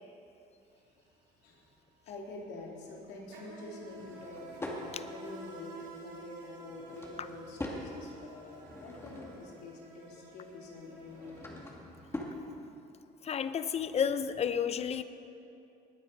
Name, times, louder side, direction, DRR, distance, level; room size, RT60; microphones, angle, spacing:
Insect, 0.6-0.8 1.1-12.1, right 2 dB, 80° right, 3.7 m, -51 dB
voice 1, 2.1-11.6, left 3 dB, 85° left, -2 dB, 3.1 m, -47 dB
Drawer open or close / Wood, 3.9-4.9 6.6-7.9 8.4-9.6 10.9-12.4, left 1 dB, 15° left, 2.2 m, -43 dB
voice 2, 13.2-15.0, left 7 dB, 40° left, 12 dB, 0.7 m, -31 dB
19.5 x 9.7 x 5.4 m, 2.8 s
cardioid pair, 110°, 17 cm